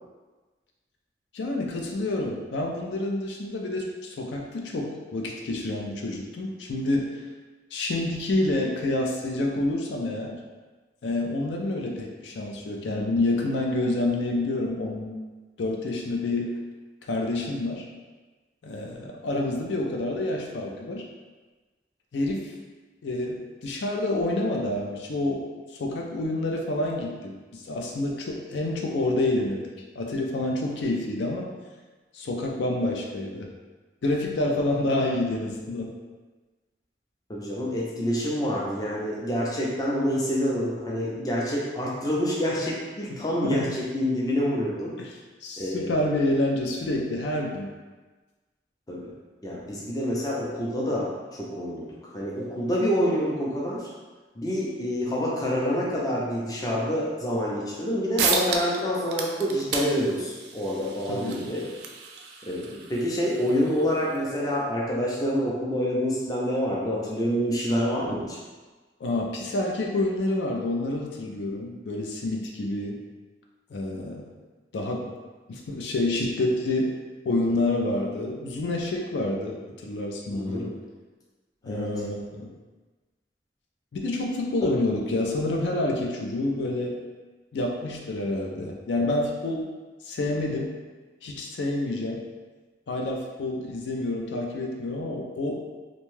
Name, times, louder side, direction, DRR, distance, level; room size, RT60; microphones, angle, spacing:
voice 1, 1.3-7.1 7.7-10.4 11.0-15.2 15.6-16.5 17.1-17.8 18.6-21.0 22.1-22.5 23.0-25.5 25.8-29.6 30.0-31.5 32.1-33.5 34.0-35.9 43.4-43.7 45.0-47.7 61.1-61.5 69.0-73.0 73.7-74.3 74.7-75.1 75.5-76.9 77.2-80.8 81.6-82.5 83.9-87.0 87.5-89.7 90.0-90.8 91.2-92.2 92.9-95.6, left 2 dB, 80° left, 0 dB, 0.4 m, -28 dB
voice 2, 37.3-44.9 45.6-45.9 48.9-49.1 49.4-53.9 54.4-61.7 62.5-68.4 80.3-80.7 81.6-81.9, equal, 20° left, -4 dB, 0.4 m, -27 dB
sound 1, 57.8-57.9 58.2-58.8 59.1-64.2, right 5 dB, 70° right, 0.3 m, -32 dB
2.6 x 2.2 x 3.1 m, 1.3 s
head